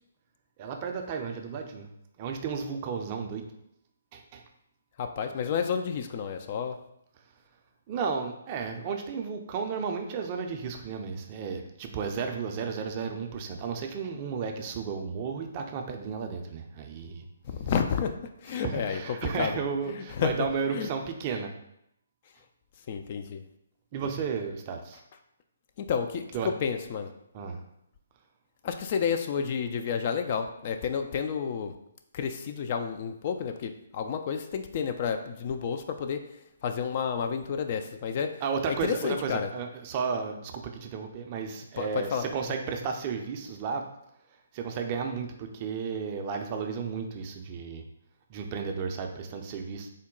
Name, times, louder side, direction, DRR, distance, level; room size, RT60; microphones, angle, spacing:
voice 1, 0.6-1.9 2.2-3.5 4.1-4.4 7.9-17.2 18.5-21.5 23.9-25.0 26.3-26.5 27.3-27.6 38.4-43.9 44.5-47.8 48.3-49.9, right 6 dB, 35° right, 4 dB, 0.4 m, -33 dB
voice 2, 5.0-6.8 17.5-18.2 18.4-19.0 19.4-19.5 19.9-20.3 20.7-20.9 22.9-23.4 25.8-26.3 26.6-27.1 28.6-31.7 32.1-36.2 36.6-38.3 38.7-39.5 41.8-42.2, left 7 dB, 40° left, 7 dB, 0.3 m, -30 dB
3.8 x 2.1 x 3.7 m, 0.78 s
figure-of-eight pair, 135°, 0 cm